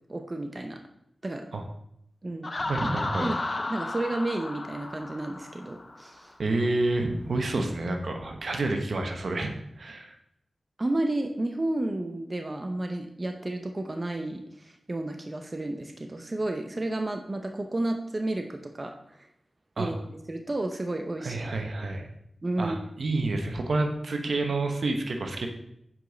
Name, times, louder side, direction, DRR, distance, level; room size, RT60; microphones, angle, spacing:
voice 1, 0.1-0.8 1.2-1.5 2.2-2.5 3.2-3.4 3.7-6.3 10.8-19.3 19.8-20.0 20.3-21.5 22.4-22.8, right 2 dB, 40° right, 4 dB, 0.7 m, -31 dB
Laughter, 2.4-6.1, left 2 dB, 45° left, 0.5 m, -33 dB
voice 2, 2.6-3.3 6.4-9.5 9.8-10.1 19.8-19.9 21.2-22.1 22.6-25.5, right 2 dB, 75° right, 4 dB, 1.0 m, -29 dB
7.4 x 5.1 x 3.9 m, 0.75 s
cardioid pair, 45°, 0 cm